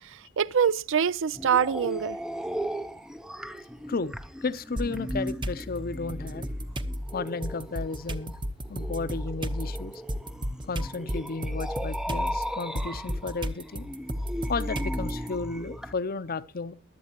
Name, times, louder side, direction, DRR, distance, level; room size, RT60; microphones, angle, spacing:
voice 1, 0.0-2.2, right 7 dB, 65° right, 0.5 m, -25 dB
sound 1, 1.3-15.9, equal, 5° right, 0.6 m, -37 dB
voice 2, 4.4-6.5 7.1-8.4 8.7-9.9 10.7-13.8 14.5-16.7, left 4 dB, 45° left, 0.7 m, -33 dB
sound 2, 4.8-5.6 6.1-15.3, equal, 25° right, 1.0 m, -33 dB
23.0 x 8.6 x 2.9 m
head